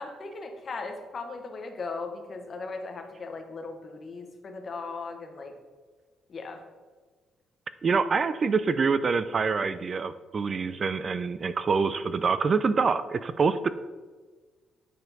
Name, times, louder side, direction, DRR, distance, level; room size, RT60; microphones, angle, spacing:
voice 1, 0.0-5.5 6.3-6.6, left 3 dB, 45° left, 4 dB, 1.1 m, -38 dB
voice 2, 7.8-13.7, right 5 dB, 40° right, 13 dB, 0.3 m, -26 dB
9.1 x 4.3 x 4.0 m, 1.4 s
cardioid pair, 90°, 0 cm